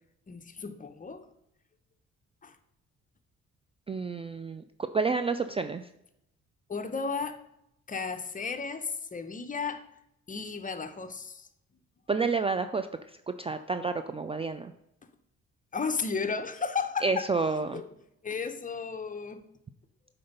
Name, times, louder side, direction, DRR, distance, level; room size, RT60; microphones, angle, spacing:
voice 1, 0.3-1.3 2.4-2.6 6.7-7.4 7.9-9.8 10.3-11.5 15.7-17.3 17.7-17.9 18.2-19.4, left 5 dB, 25° left, 8 dB, 0.8 m, -34 dB
voice 2, 3.9-5.9 12.1-12.9 13.3-14.7 17.0-17.8, right 4 dB, 20° right, 9 dB, 0.3 m, -29 dB
7.8 x 4.4 x 5.4 m, 0.81 s
cardioid pair, 90°, 30 cm